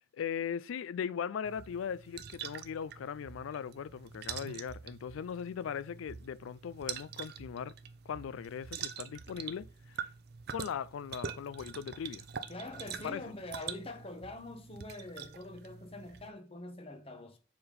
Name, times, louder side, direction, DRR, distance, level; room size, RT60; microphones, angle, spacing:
voice 1, 0.1-7.8 8.1-10.0 10.5-12.3 13.0-13.2, left 7 dB, 85° left, 0.3 m, -39 dB
sound 1, 1.4-16.3, right 7 dB, 50° right, 0.5 m, -45 dB
voice 2, 12.5-17.4, left 2 dB, 30° left, 0.9 m, -44 dB
6.9 x 3.6 x 3.8 m
head